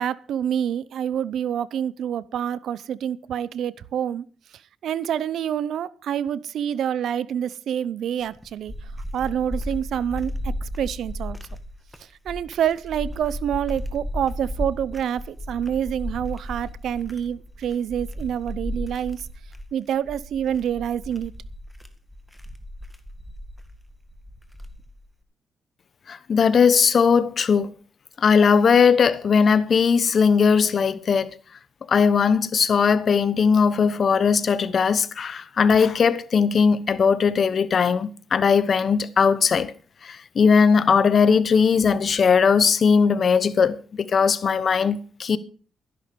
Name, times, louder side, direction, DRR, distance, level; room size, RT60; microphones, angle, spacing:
voice 1, 0.0-4.2 4.8-8.7 9.1-11.4 12.2-19.3 19.7-21.3, right 9 dB, 80° right, 0.6 m, -27 dB
sound 1, 8.2-25.1, left 1 dB, ahead, 1.9 m, -35 dB
voice 2, 26.1-27.7 28.2-31.3 31.9-39.7 40.0-45.4, left 6 dB, 55° left, 1.0 m, -19 dB
12.5 x 11.0 x 5.2 m
cardioid pair, 85°, 0 cm